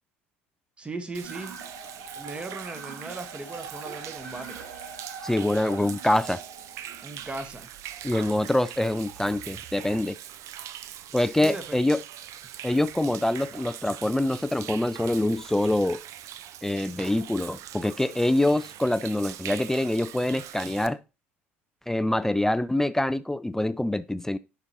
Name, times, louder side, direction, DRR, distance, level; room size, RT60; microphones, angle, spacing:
voice 1, 0.8-1.6 2.1-4.6 7.0-7.7 11.4-11.8, right 2 dB, 15° right, 1.0 m, -37 dB
Human voice / Rain / Stream, 1.1-20.9, right 11 dB, 50° right, 0.5 m, -42 dB
sound 1, 1.2-7.2, right 4 dB, 85° right, 3.1 m, -43 dB
voice 2, 5.2-6.4 8.0-10.2 11.1-12.0 12.6-16.0 16.6-21.0 21.9-24.4, left 1 dB, 5° left, 0.3 m, -25 dB
10.5 x 4.9 x 2.8 m
hypercardioid pair, 70°, 7 cm